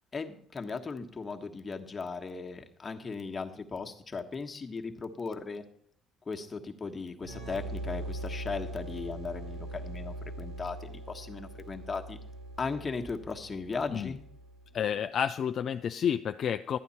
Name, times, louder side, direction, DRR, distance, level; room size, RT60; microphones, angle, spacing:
voice 1, 0.1-5.6 6.2-12.2 12.6-14.3, left 4 dB, 35° left, 4 dB, 1.4 m, -37 dB
sound 1, 7.2-14.7, right 1 dB, 75° right, 4.8 m, -41 dB
voice 2, 14.7-16.8, left 8 dB, 55° left, 9 dB, 0.4 m, -30 dB
12.0 x 9.1 x 4.2 m, 0.65 s
hypercardioid pair, 55°, 0 cm